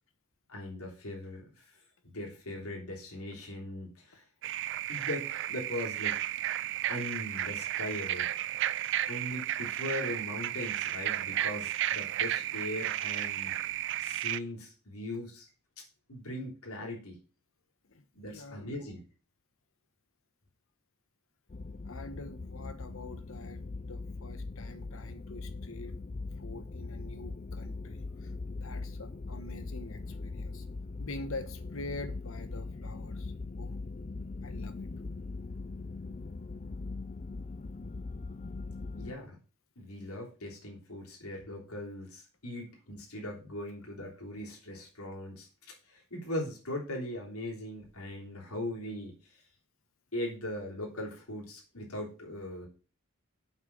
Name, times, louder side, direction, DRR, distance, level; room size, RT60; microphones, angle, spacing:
voice 1, 0.5-4.2 4.9-6.2 6.9-8.3 9.1-13.5 14.0-15.5 15.8-15.9 16.1-17.2 18.1-19.0 38.9-39.4 39.8-49.4 50.1-52.7, left 1 dB, 85° left, 3.2 m, -40 dB
sound 1, 4.4-14.4, right 12 dB, 55° right, 0.4 m, -33 dB
voice 2, 17.9-18.7 21.8-26.0 26.4-28.3 28.6-30.6 31.0-33.8 34.4-34.9, left 2 dB, 65° left, 1.2 m, -45 dB
sound 2, 21.5-39.2, left 3 dB, 35° left, 0.4 m, -41 dB
7.5 x 5.7 x 7.0 m
head